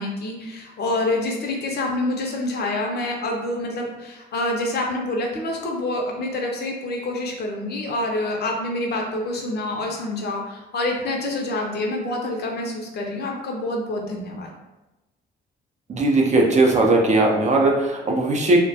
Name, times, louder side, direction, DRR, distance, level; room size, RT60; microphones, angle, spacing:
voice 1, 0.0-14.5, left 2 dB, 55° left, 0 dB, 0.6 m, -27 dB
voice 2, 15.9-18.6, right 2 dB, 35° right, 0 dB, 0.5 m, -18 dB
2.2 x 2.1 x 2.7 m, 1.0 s
cardioid pair, 90°, 20 cm